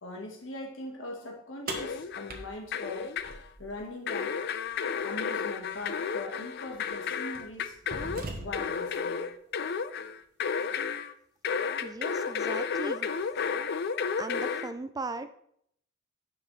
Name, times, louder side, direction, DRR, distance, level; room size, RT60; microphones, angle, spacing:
voice 1, 0.0-3.1 3.6-4.4 5.0-7.8 8.3-9.3, left 2 dB, 70° left, 2 dB, 1.5 m, -41 dB
sound 1, 1.7-2.4 2.7-3.4 4.1-11.1 11.4-14.7, left 6 dB, 55° left, 0.4 m, -32 dB
sound 2, 1.7-3.8 5.7-5.8 6.7-6.9 7.4-8.8, right 2 dB, 50° right, 1.1 m, -40 dB
voice 2, 11.8-13.1 14.2-15.3, right 3 dB, 20° right, 11 dB, 0.3 m, -38 dB
9.0 x 6.0 x 3.2 m, 0.69 s
head